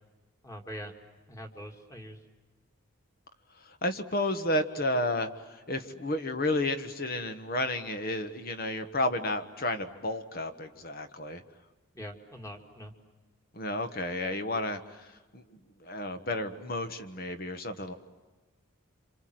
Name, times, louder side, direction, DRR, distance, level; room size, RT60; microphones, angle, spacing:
voice 1, 0.4-0.9 1.3-2.2 11.9-12.9, equal, 15° left, 3 dB, 2.2 m, -43 dB
voice 2, 3.8-5.3 5.7-11.4 13.5-15.0 15.3-15.4 15.8-17.9, left 1 dB, 45° left, 8 dB, 1.4 m, -31 dB
28.0 x 27.0 x 7.8 m, 1.2 s
head